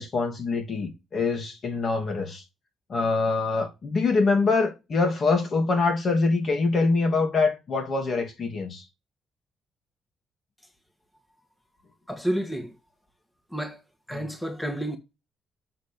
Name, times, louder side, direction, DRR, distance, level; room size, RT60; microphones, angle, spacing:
voice 1, 0.0-2.4 2.9-8.8 14.1-14.3, left 3 dB, 55° left, 2.7 m, -24 dB
voice 2, 12.1-12.7 13.5-13.8 14.1-15.0, right 1 dB, 10° left, 1.6 m, -30 dB
7.5 x 4.3 x 5.3 m
cardioid pair, 70°, 0 cm